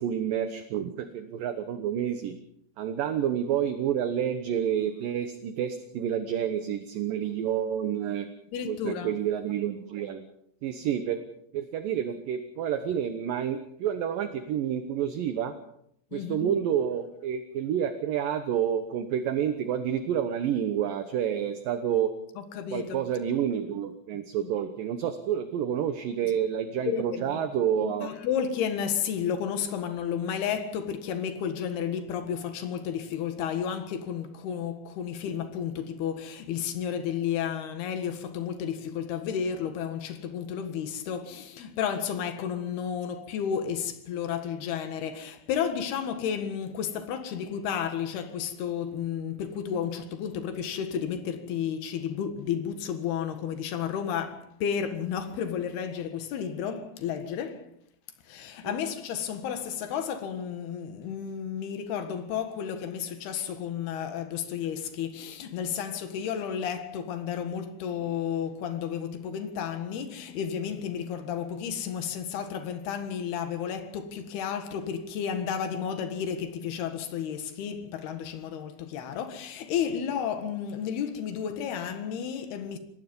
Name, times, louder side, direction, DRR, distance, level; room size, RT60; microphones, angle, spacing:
voice 1, 0.0-2.3 2.8-8.3 8.7-10.2 10.6-11.2 11.5-15.5 16.1-22.1 22.7-28.1 58.6-58.8, right 9 dB, 70° right, 2.4 m, -29 dB
voice 2, 8.5-9.1 16.1-16.6 22.4-23.0 24.4-24.5 26.2-26.5 26.9-27.4 27.9-57.7 58.3-82.8, left 8 dB, 70° left, 3.6 m, -32 dB
26.5 x 19.0 x 5.4 m
omnidirectional pair, 4.9 m